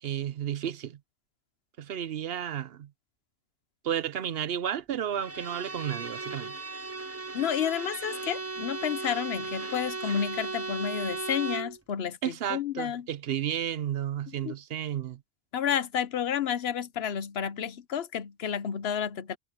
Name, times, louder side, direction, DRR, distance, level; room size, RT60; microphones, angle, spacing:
voice 1, 0.0-1.0 1.8-2.9 3.8-6.5 12.2-15.2, right 10 dB, 70° right, 0.9 m, -32 dB
Bowed string instrument, 5.1-11.8, right 3 dB, 15° right, 0.5 m, -36 dB
voice 2, 7.3-13.1 14.4-14.5 15.5-19.4, left 8 dB, 75° left, 1.0 m, -31 dB
omnidirectional pair, 1.1 m